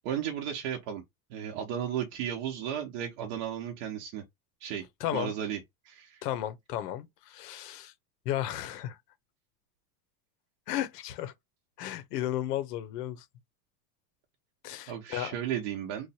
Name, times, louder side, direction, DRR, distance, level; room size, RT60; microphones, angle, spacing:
voice 1, 0.0-1.0 1.3-4.2 4.6-4.9 5.1-5.6 5.8-6.2 14.9-16.1, right 9 dB, 45° right, 0.8 m, -34 dB
voice 2, 5.0-5.3 6.2-7.9 8.2-9.0 10.7-11.3 11.8-13.2 14.6-15.3, left 12 dB, 75° left, 0.8 m, -34 dB
3.1 x 2.1 x 4.1 m
supercardioid pair, 165°, 47 cm